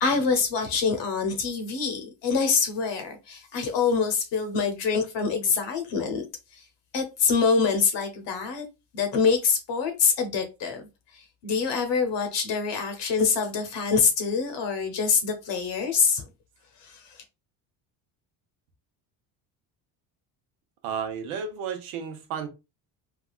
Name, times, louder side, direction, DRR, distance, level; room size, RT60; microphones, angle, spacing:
voice 1, 0.0-6.2 6.9-8.6 8.9-10.8 11.4-16.2 16.8-16.9, left 5 dB, 60° left, 0.9 m, -25 dB
voice 2, 20.8-22.5, right 7 dB, 90° right, 0.9 m, -32 dB
3.3 x 2.3 x 2.3 m
cardioid pair, 105°, 49 cm